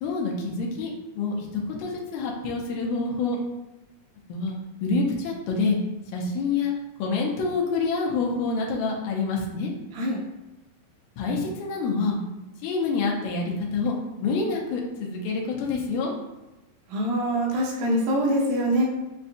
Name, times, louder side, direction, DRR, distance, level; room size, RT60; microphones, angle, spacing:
voice 1, 0.0-3.4 4.3-4.5 4.8-5.8 6.1-6.7 7.0-9.7 11.2-12.2 12.6-16.1, left 4 dB, 85° left, -1 dB, 2.4 m, -27 dB
voice 2, 16.9-18.8, equal, 75° right, -2 dB, 1.9 m, -24 dB
6.6 x 2.7 x 2.3 m, 1.1 s
omnidirectional pair, 4.1 m